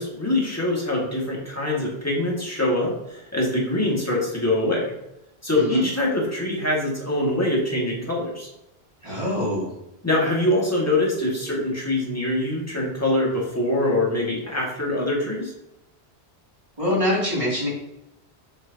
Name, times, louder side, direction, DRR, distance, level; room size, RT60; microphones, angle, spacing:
voice 1, 0.0-4.9 5.4-8.5 10.0-15.5, left 1 dB, 15° left, -3 dB, 2.1 m, -24 dB
voice 2, 5.5-5.8 9.0-9.7 16.8-17.7, left 1 dB, 30° right, -6 dB, 2.9 m, -24 dB
7.2 x 6.5 x 2.9 m, 0.88 s
omnidirectional pair, 1.1 m